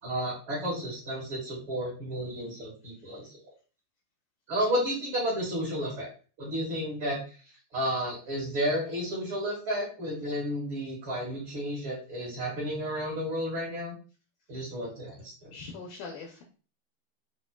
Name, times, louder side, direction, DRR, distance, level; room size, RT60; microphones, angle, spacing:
voice 1, 0.0-3.3 4.5-6.1 6.4-7.4 7.7-13.9 14.5-15.5, equal, 40° right, -4 dB, 2.1 m, -32 dB
voice 2, 15.5-16.4, left 4 dB, 80° left, 1 dB, 1.8 m, -42 dB
7.6 x 2.6 x 2.3 m, 0.37 s
omnidirectional pair, 4.3 m